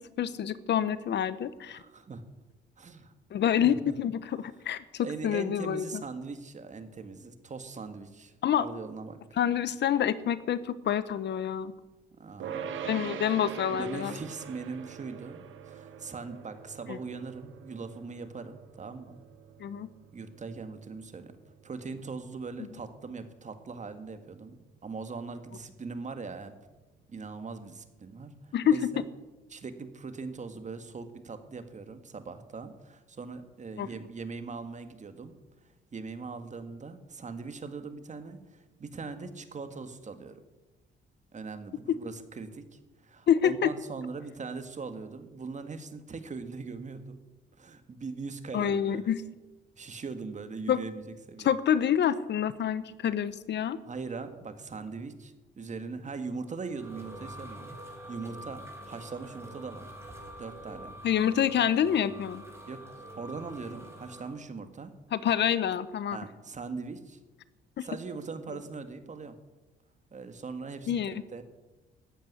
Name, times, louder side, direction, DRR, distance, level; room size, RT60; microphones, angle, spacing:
voice 1, 0.2-1.8 3.3-6.0 8.4-8.7 9.4-11.7 12.8-14.1 16.9-17.0 19.6-19.9 28.5-28.9 33.8-33.9 41.9-42.0 43.3-43.7 48.5-49.2 50.7-50.8 51.4-53.8 61.0-62.4 65.1-66.2 67.8-67.9 70.9-71.1, left 9 dB, 60° left, 16 dB, 0.9 m, -27 dB
voice 2, 1.7-2.2 2.8-3.1 3.6-3.7 5.0-8.3 8.6-9.2 12.2-13.1 13.7-19.2 20.1-21.3 21.6-26.5 27.1-29.0 29.5-35.3 35.9-40.4 41.3-47.2 47.6-49.1 49.8-51.0 51.3-51.6 53.9-59.9 60.4-61.0 62.7-62.9 63.1-64.9 66.1-67.2 67.8-69.4 70.1-71.4, right 4 dB, 35° right, 9 dB, 1.8 m, -41 dB
sound 1, 12.4-23.7, right 7 dB, 75° right, 1.6 m, -44 dB
sound 2, 56.3-64.3, right 1 dB, 10° right, 4.5 m, -46 dB
13.5 x 9.0 x 9.6 m, 1.1 s
cardioid pair, 90°, 20 cm